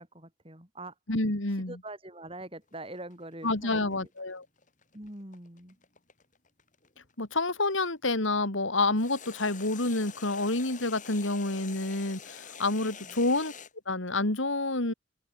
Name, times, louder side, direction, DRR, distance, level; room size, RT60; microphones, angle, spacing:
voice 1, 0.0-0.9 1.7-4.1 4.9-5.8 13.0-13.2, right 1 dB, 25° right, 5.0 m, -44 dB
voice 2, 1.1-1.7 3.4-4.4 7.2-13.5 13.9-14.9, left 2 dB, 70° left, 2.9 m, -28 dB
sound 1, 2.7-7.9 9.0-13.7, left 7 dB, 40° left, 7.3 m, -47 dB
open air
head